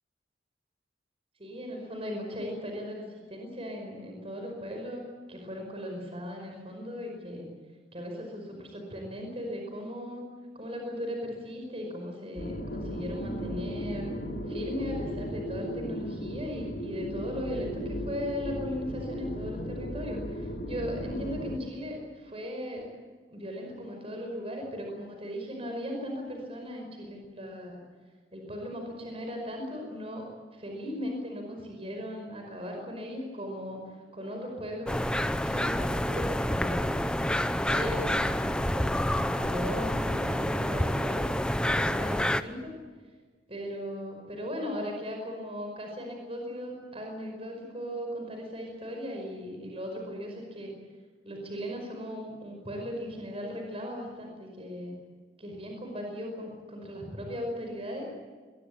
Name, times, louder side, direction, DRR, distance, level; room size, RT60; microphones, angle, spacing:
voice 1, 1.4-7.5 7.9-10.2 10.6-14.1 14.5-22.9 23.3-27.8 28.3-30.3 30.5-33.8 34.1-34.9 35.3-37.1 37.6-41.3 41.6-42.8 43.5-50.7 51.2-55.0 55.4-58.1, equal, 30° right, 2 dB, 5.2 m, -38 dB
sound 1, 12.3-21.6, equal, 55° left, 4.8 m, -36 dB
sound 2, 34.9-42.4, left 1 dB, 5° left, 0.7 m, -28 dB
23.0 x 22.0 x 8.6 m, 1.4 s
head